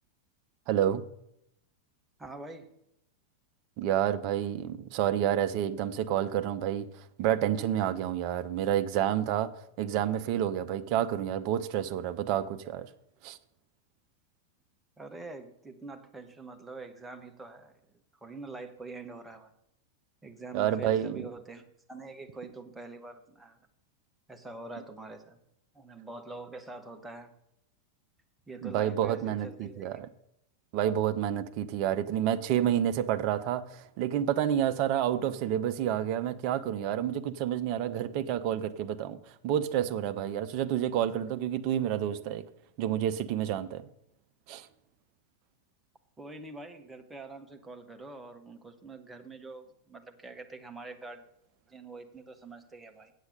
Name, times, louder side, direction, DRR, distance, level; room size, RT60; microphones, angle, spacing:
voice 1, 0.7-1.0 3.8-9.5 9.8-12.9 13.2-13.4 20.5-21.3 28.6-30.1 30.7-42.4 42.8-43.8 44.5-44.7, right 10 dB, 45° right, 12 dB, 0.6 m, -29 dB
voice 2, 2.2-2.7 15.0-19.5 20.2-21.6 21.9-23.6 24.3-25.4 25.7-27.3 28.5-30.0 46.2-51.2 51.7-53.1, right 3 dB, 10° right, 5 dB, 1.2 m, -45 dB
8.3 x 8.0 x 6.7 m, 0.80 s
figure-of-eight pair, 90°, 0 cm